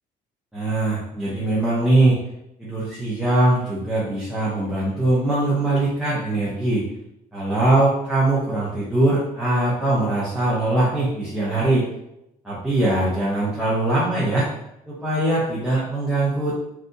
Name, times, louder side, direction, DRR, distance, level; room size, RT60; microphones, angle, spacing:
voice 1, 0.5-2.2 2.6-6.8 7.3-11.8 12.4-14.5 14.9-16.5, right 2 dB, 5° right, -9 dB, 0.8 m, -21 dB
3.3 x 2.5 x 2.7 m, 0.86 s
cardioid pair, 110°, 17 cm